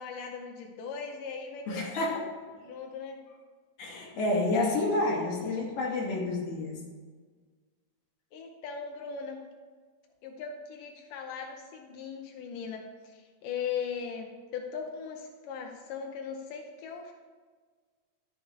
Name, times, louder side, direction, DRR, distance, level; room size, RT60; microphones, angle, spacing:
voice 1, 0.0-2.2 2.6-3.2 8.3-9.4 10.2-17.1, left 6 dB, 85° left, 3 dB, 2.4 m, -39 dB
voice 2, 1.7-2.2 3.8-6.8, left 2 dB, 50° left, -3 dB, 3.0 m, -29 dB
12.5 x 6.8 x 4.7 m, 1.5 s
omnidirectional pair, 3.7 m